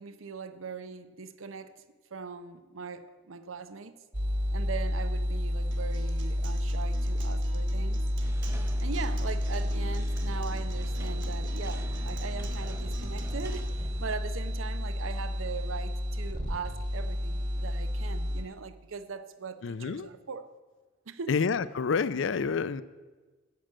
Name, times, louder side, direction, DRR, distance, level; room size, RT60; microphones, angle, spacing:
voice 1, 0.0-1.8 2.1-4.0 4.5-8.0 8.8-20.5 21.1-21.4, right 5 dB, 90° right, 0.7 m, -40 dB
sound 1, 4.1-18.4, equal, 40° right, 1.6 m, -31 dB
Acoustic guitar, 5.7-13.7, right 3 dB, 65° right, 1.5 m, -48 dB
sound 2, 8.2-14.2, right 1 dB, 15° right, 0.5 m, -46 dB
voice 2, 19.6-20.1 21.3-22.8, left 5 dB, 65° left, 0.5 m, -28 dB
10.0 x 7.5 x 7.5 m
head